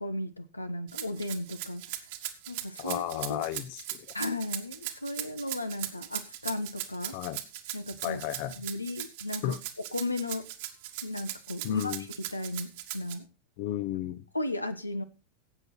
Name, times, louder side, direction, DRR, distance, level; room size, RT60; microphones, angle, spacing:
voice 1, 0.0-1.8 2.5-3.0 3.3-3.4 4.1-7.2 7.7-8.2 8.6-9.5 9.9-10.5 11.0-11.9 12.3-13.2 14.3-15.0, left 2 dB, 85° left, 10 dB, 1.0 m, -35 dB
Rattle (instrument), 0.9-13.1, right 14 dB, 50° right, 1.6 m, -38 dB
voice 2, 2.8-4.1 7.1-7.4 8.0-8.6 9.4-9.6 11.6-12.0 13.6-14.2, left 13 dB, 45° left, 14 dB, 0.9 m, -33 dB
16.5 x 8.0 x 4.2 m, 0.33 s
figure-of-eight pair, 90°, 0 cm